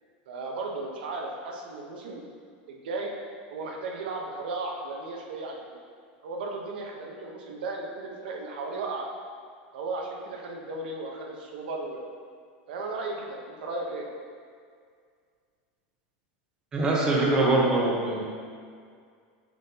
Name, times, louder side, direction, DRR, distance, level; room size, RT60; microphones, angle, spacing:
voice 1, 0.3-2.2 2.7-3.1 3.5-5.8 6.2-9.1 9.7-12.0 12.7-14.1, right 3 dB, 85° right, 0 dB, 1.0 m, -35 dB
voice 2, 16.7-18.3, right 2 dB, 15° right, -4 dB, 0.9 m, -23 dB
7.3 x 5.5 x 2.9 m, 2.1 s
supercardioid pair, 175°, 5 cm